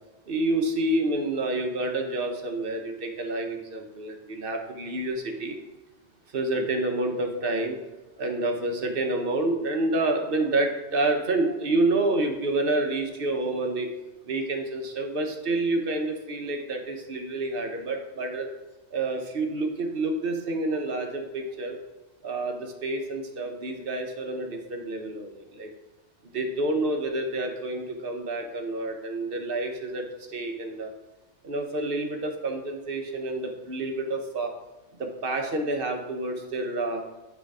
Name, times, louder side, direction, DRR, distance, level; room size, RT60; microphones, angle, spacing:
voice 1, 0.3-5.6 6.3-7.8 8.2-13.9 14.3-18.5 18.9-21.8 22.2-25.7 26.3-30.0 30.3-30.9 31.4-34.5 35.0-37.0, right 2 dB, 55° right, 3 dB, 1.0 m, -28 dB
8.9 x 3.4 x 4.7 m, 1.1 s
omnidirectional pair, 1.2 m